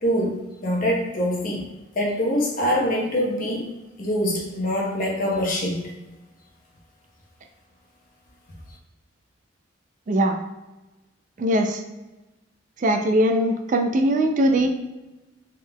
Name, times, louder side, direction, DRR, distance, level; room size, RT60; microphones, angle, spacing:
voice 1, 0.0-0.4 0.6-1.7 2.0-3.7 4.0-5.9, equal, 45° left, -1 dB, 0.9 m, -24 dB
voice 2, 10.1-10.4 11.4-11.8 12.8-14.7, right 1 dB, 40° right, 5 dB, 0.4 m, -20 dB
4.4 x 3.6 x 2.2 m, 1.1 s
head